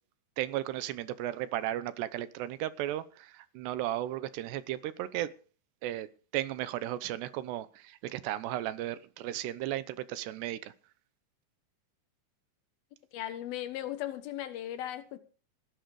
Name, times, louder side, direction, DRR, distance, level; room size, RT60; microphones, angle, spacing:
voice 1, 0.4-5.3 5.8-6.1 6.3-10.7, right 13 dB, 80° right, 3.1 m, -35 dB
voice 2, 13.1-15.2, left 12 dB, 70° left, 2.9 m, -37 dB
18.5 x 11.0 x 4.8 m
omnidirectional pair, 4.8 m